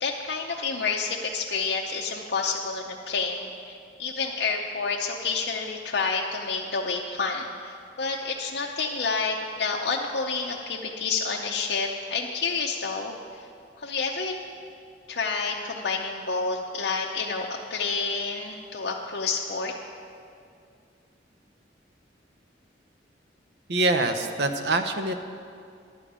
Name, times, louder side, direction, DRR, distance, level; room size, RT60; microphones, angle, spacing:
voice 1, 0.0-13.5 13.8-14.3 15.1-19.7, left 4 dB, 65° left, -1 dB, 0.6 m, -29 dB
voice 2, 23.7-25.1, right 2 dB, 65° right, 7 dB, 0.7 m, -24 dB
11.0 x 5.1 x 8.6 m, 2.4 s
head